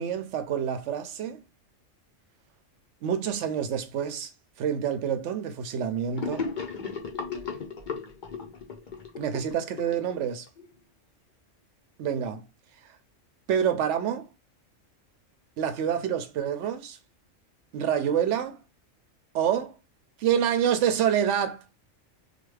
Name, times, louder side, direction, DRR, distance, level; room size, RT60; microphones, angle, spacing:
voice 1, 0.0-1.4 3.0-4.3 4.6-6.5 9.2-10.5 12.0-12.5 13.5-14.3 15.6-17.0 17.7-18.6 19.3-19.8 20.2-21.6, right 8 dB, 70° right, 0.9 m, -27 dB
Gurgling / Sink (filling or washing), 6.2-10.6, left 5 dB, 45° left, 0.7 m, -35 dB
3.3 x 2.2 x 3.2 m
omnidirectional pair, 1.3 m